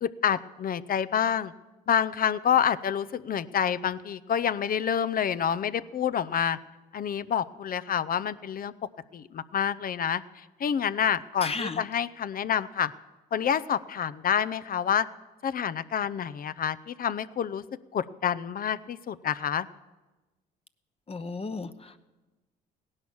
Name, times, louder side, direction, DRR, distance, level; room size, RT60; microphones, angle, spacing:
voice 1, 0.0-1.5 1.9-6.6 6.9-8.7 9.1-10.2 10.6-12.9 13.3-15.1 15.4-17.6 17.9-19.7, left 8 dB, 45° left, 15 dB, 0.7 m, -28 dB
voice 2, 11.4-11.8 21.1-22.0, left 3 dB, 30° left, 9 dB, 1.0 m, -34 dB
16.5 x 11.0 x 7.2 m, 1.1 s
hypercardioid pair, 60°, 20 cm